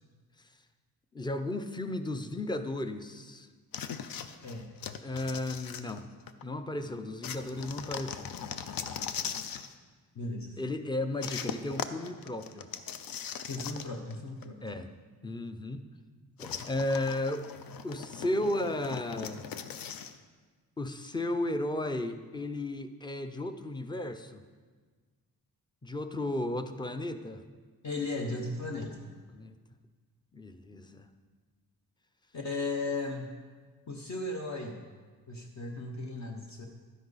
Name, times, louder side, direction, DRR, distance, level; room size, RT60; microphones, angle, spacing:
voice 1, 1.1-3.5 5.0-6.1 6.4-8.3 10.6-12.7 14.6-14.9 15.2-15.9 16.4-17.4 17.8-19.5 20.8-24.4 25.8-27.4 29.3-29.6 30.3-31.1, left 1 dB, 10° left, 9 dB, 0.5 m, -34 dB
sound 1, 3.7-6.4 7.2-9.7 11.2-14.1 14.4-14.5 16.4-20.2, left 7 dB, 70° left, 0.6 m, -40 dB
voice 2, 4.4-4.7 6.8-6.9 8.5-8.7 10.1-10.6 13.5-14.6 27.8-29.1 32.3-33.3 33.9-34.8 35.3-36.7, left 2 dB, 50° left, 1 dB, 1.0 m, -36 dB
12.5 x 10.0 x 4.1 m, 1.5 s
wide cardioid pair, 140°, 36 cm